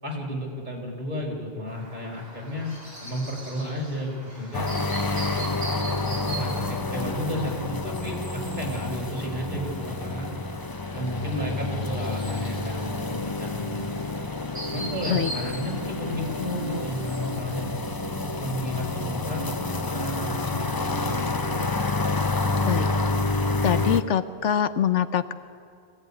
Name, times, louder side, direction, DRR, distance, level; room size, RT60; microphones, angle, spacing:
voice 1, 0.0-2.7 3.0-4.7 5.2-5.5 6.1-10.3 10.9-14.0 14.7-17.7 18.4-21.6, equal, 40° right, -1 dB, 4.7 m, -33 dB
Chirp tweet, 1.7-17.4, right 1 dB, 15° right, 6.0 m, -41 dB
sound 1, 4.5-24.0, left 2 dB, 25° left, 0.6 m, -29 dB
voice 2, 23.6-25.3, left 9 dB, 80° left, 12 dB, 1.2 m, -24 dB
24.5 x 16.5 x 9.8 m, 2.2 s
omnidirectional pair, 1.2 m